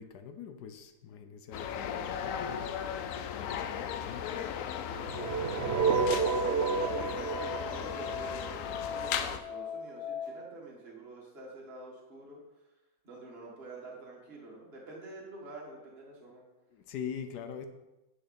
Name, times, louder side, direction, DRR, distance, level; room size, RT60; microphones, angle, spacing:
voice 1, 0.0-2.9 3.2-4.5 16.7-17.7, left 7 dB, 70° left, 8 dB, 1.2 m, -43 dB
sound 1, 1.5-9.4, left 8 dB, 90° left, 0.7 m, -37 dB
sound 2, 4.9-9.0, right 5 dB, 85° right, 0.5 m, -30 dB
Musical instrument, 5.0-10.3, left 7 dB, ahead, 2.3 m, -41 dB
voice 2, 5.1-12.4 13.0-16.4, right 2 dB, 35° right, -3 dB, 1.9 m, -47 dB
9.6 x 6.2 x 4.2 m, 1.0 s
omnidirectional pair, 2.0 m